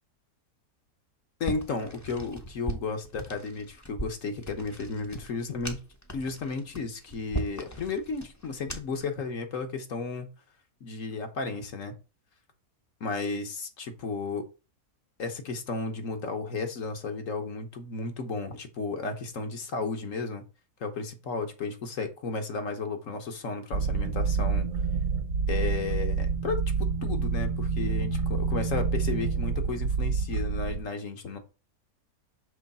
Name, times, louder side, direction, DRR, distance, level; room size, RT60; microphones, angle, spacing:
voice 1, 1.4-5.8 6.1-10.3 10.8-12.0 13.0-14.5 15.2-20.4 20.8-24.7 25.5-31.4, left 4 dB, 60° left, 6 dB, 1.3 m, -33 dB
sound 1, 1.4-9.1, right 2 dB, 15° left, 0.7 m, -39 dB
sound 2, 23.7-30.8, right 5 dB, 55° right, 1.1 m, -28 dB
6.3 x 3.3 x 5.3 m, 0.32 s
omnidirectional pair, 1.6 m